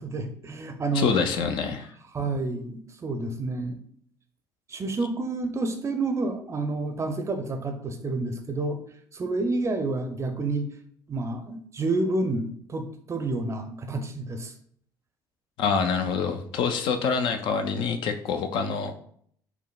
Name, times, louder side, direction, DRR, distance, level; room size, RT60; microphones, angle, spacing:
voice 1, 0.0-1.1 2.1-3.8 4.7-8.8 9.1-10.7 11.1-14.5, right 2 dB, 25° right, 6 dB, 0.6 m, -29 dB
voice 2, 0.9-1.9 15.6-18.9, left 5 dB, 50° left, 7 dB, 0.4 m, -26 dB
5.8 x 2.0 x 2.3 m, 0.63 s
figure-of-eight pair, 55°, 10 cm